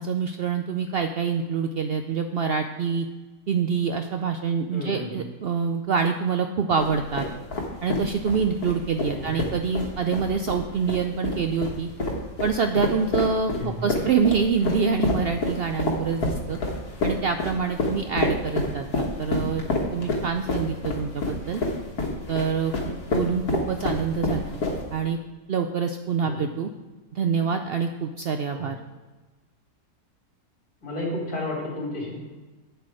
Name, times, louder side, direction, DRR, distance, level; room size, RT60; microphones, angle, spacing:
voice 1, 0.0-3.1 3.5-7.2 7.8-11.9 12.4-16.6 17.0-19.6 19.9-21.6 22.3-24.5 24.9-25.2 25.5-26.7 27.1-28.8, right 6 dB, 75° right, 6 dB, 0.5 m, -26 dB
voice 2, 4.7-5.2 9.1-9.4 13.6-13.9 26.2-26.4 28.5-28.7 30.8-32.2, left 1 dB, 60° left, -3 dB, 3.4 m, -32 dB
sound 1, 6.8-25.1, left 2 dB, 80° left, 1.8 m, -28 dB
8.3 x 7.9 x 4.9 m, 1.2 s
omnidirectional pair, 1.6 m